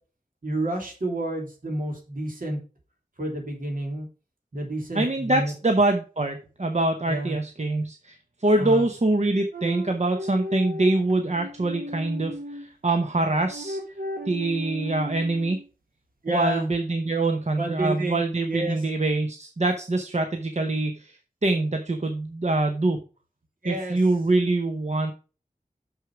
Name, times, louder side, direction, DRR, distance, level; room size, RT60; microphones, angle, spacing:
voice 1, 0.4-2.6 3.2-4.1 4.5-5.5 7.1-7.4 8.6-8.9 16.2-16.7 17.6-18.2 18.5-18.8 23.6-24.0, right 1 dB, 70° right, 1 dB, 3.0 m, -29 dB
voice 2, 4.9-13.8 14.3-15.6 16.3-23.0 23.6-25.1, right 2 dB, 50° right, 5 dB, 0.9 m, -24 dB
sound 1, 9.5-12.7 13.4-15.7, left 1 dB, 90° right, 1.2 m, -35 dB
6.5 x 6.3 x 4.7 m, 0.35 s
wide cardioid pair, 60°, 15 cm